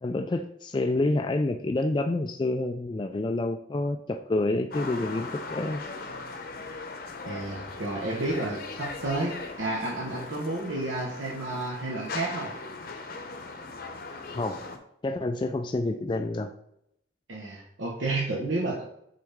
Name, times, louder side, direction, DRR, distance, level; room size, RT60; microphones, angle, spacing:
voice 1, 0.0-5.8 14.3-14.6 15.0-16.5, left 2 dB, 25° left, 6 dB, 0.3 m, -28 dB
sound 1, 4.7-14.8, left 3 dB, 50° left, 0.8 m, -39 dB
voice 2, 7.2-12.5 17.3-18.8, right 2 dB, 85° right, -4 dB, 1.2 m, -31 dB
7.7 x 4.1 x 3.6 m, 0.76 s
head